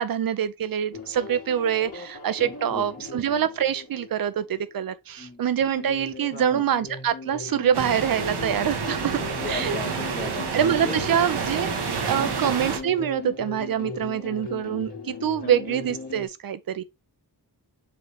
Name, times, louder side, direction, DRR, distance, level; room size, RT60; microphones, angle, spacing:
voice 1, 0.0-9.2 9.5-9.8 10.5-16.8, right 9 dB, 60° right, 0.6 m, -25 dB
sound 1, 0.9-4.7 5.6-16.3, left 4 dB, 65° left, 1.8 m, -38 dB
voice 2, 2.4-3.1 5.2-5.4 6.3-6.6 9.4-11.1 12.2-12.4 15.4-15.6, left 3 dB, 25° left, 0.7 m, -37 dB
sound 2, 7.7-12.8, right 6 dB, 85° right, 1.1 m, -29 dB
4.9 x 3.2 x 3.2 m
wide cardioid pair, 95°, 39 cm